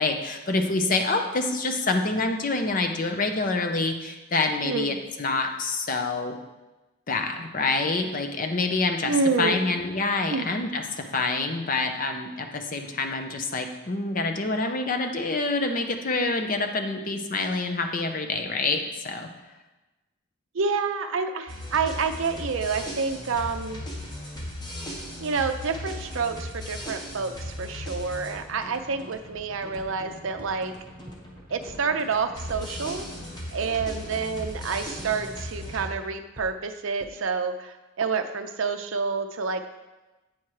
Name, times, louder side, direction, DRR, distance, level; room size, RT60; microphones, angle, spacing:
voice 1, 0.0-6.3 7.1-10.8 11.1-19.3, left 3 dB, 40° left, 5 dB, 0.7 m, -27 dB
voice 2, 4.6-5.0 9.0-9.6 10.3-10.5 20.5-23.8 25.2-27.3 27.6-30.7 31.5-33.1 33.5-39.6, right 5 dB, 65° right, 6 dB, 0.5 m, -28 dB
Last chance, 21.5-35.8, left 1 dB, 20° left, 1.3 m, -38 dB
sound 1, 29.8-29.9 30.4-30.5 31.1-31.2 31.7-31.8 32.1-32.6 33.2-33.3 33.8-33.9 34.4-34.5 35.0-35.1 35.7-35.8 36.4-36.5 37.0-37.1, right 1 dB, 25° right, 1.1 m, -42 dB
8.6 x 4.5 x 4.7 m, 1.1 s
head